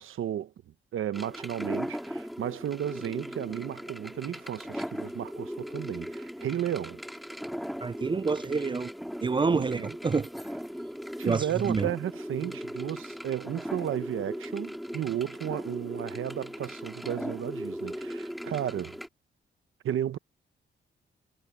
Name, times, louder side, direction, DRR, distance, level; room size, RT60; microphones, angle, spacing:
voice 1, 0.0-7.0 9.5-9.9 11.2-19.0 19.8-20.2, right 10 dB, 85° right, 1.0 m, -33 dB
sound 1, 1.1-19.1, equal, ahead, 2.0 m, -38 dB
voice 2, 7.8-8.9 9.2-10.3 11.2-11.9, right 4 dB, 25° right, 0.4 m, -28 dB
cardioid pair, 110°, 20 cm